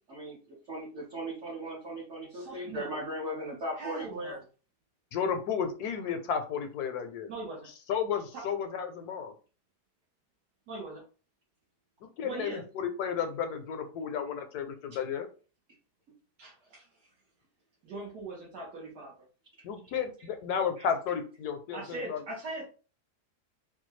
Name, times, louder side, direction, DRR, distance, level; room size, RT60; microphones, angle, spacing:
voice 1, 0.1-4.4, right 1 dB, 50° right, -6 dB, 1.2 m, -38 dB
voice 2, 2.3-3.0 3.8-4.4 7.3-7.7 8.3-8.4 10.7-11.0 12.2-12.6 16.4-16.9 17.8-19.1 20.2-20.3 20.8-20.9 21.7-22.6, right 2 dB, 75° right, -4 dB, 1.6 m, -41 dB
voice 3, 5.1-7.3 7.9-9.3 12.0-15.3 19.6-22.2, left 7 dB, 75° left, 7 dB, 1.1 m, -33 dB
4.1 x 2.3 x 3.1 m, 0.36 s
omnidirectional pair, 1.8 m